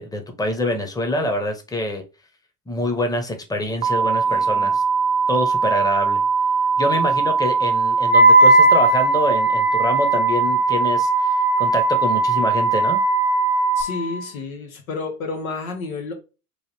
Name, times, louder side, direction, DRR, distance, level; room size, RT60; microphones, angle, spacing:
voice 1, 0.0-2.0 2.7-4.8 5.3-6.2 6.8-13.0, left 1 dB, 10° left, 0.8 m, -25 dB
sound 1, 3.8-13.8, right 5 dB, 45° right, 0.4 m, -20 dB
voice 2, 4.0-4.7 13.8-16.1, left 3 dB, 85° left, 0.9 m, -31 dB
Wind instrument woodwind instrument, 8.1-14.2, right 1 dB, 45° left, 1.8 m, -20 dB
3.1 x 2.5 x 3.3 m
hypercardioid pair, 60°, 41 cm